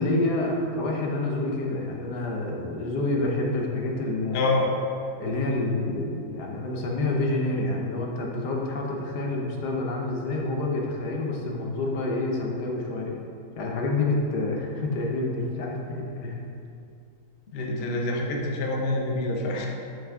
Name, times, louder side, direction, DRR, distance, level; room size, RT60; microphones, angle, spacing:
voice 1, 0.0-4.5 5.2-13.2 13.6-16.4, left 2 dB, 75° left, 0 dB, 1.4 m, -28 dB
voice 2, 4.3-4.8 17.5-19.7, left 2 dB, 50° left, 0 dB, 0.7 m, -26 dB
6.0 x 5.6 x 3.5 m, 2.6 s
omnidirectional pair, 1.8 m